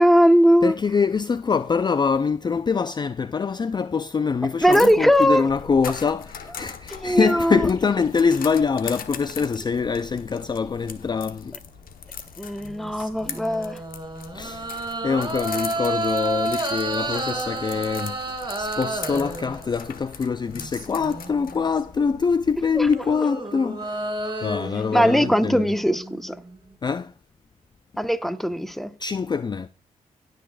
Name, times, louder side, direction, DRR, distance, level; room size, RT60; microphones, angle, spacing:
voice 1, 0.0-0.7 4.6-5.5 6.9-7.6 12.4-13.8 22.8-22.9 24.2-24.3 24.9-26.4 28.0-28.9, equal, ahead, 1.2 m, -19 dB
voice 2, 0.6-11.6 14.3-25.7 26.8-27.1 29.0-29.7, left 5 dB, 30° left, 0.4 m, -24 dB
sound 1, 4.7-22.9, left 7 dB, 70° left, 1.1 m, -40 dB
sound 2, 12.6-20.1 20.5-21.6 22.6-26.6, right 2 dB, 25° right, 2.7 m, -31 dB
17.5 x 6.5 x 2.4 m
supercardioid pair, 45°, 15 cm